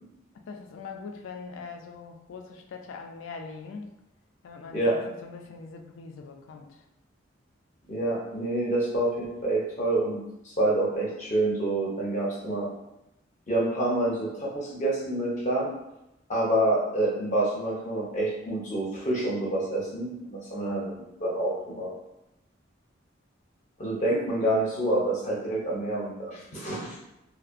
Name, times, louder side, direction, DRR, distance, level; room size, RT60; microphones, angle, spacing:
voice 1, 0.5-3.9 4.4-6.8, left 4 dB, 85° left, 3 dB, 0.4 m, -42 dB
voice 2, 7.9-12.7 13.5-15.7 16.3-21.9 23.8-27.0, right 1 dB, 40° left, -5 dB, 0.5 m, -27 dB
2.5 x 2.0 x 2.4 m, 0.87 s
head